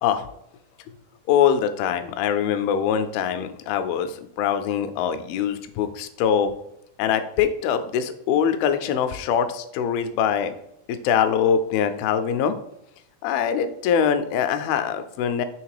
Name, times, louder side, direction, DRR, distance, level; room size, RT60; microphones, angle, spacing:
voice 1, 1.3-6.5 7.0-10.5 10.9-12.6 13.2-15.5, left 8 dB, 90° left, 9 dB, 2.5 m, -23 dB
6.5 x 3.5 x 4.8 m, 0.77 s
omnidirectional pair, 4.2 m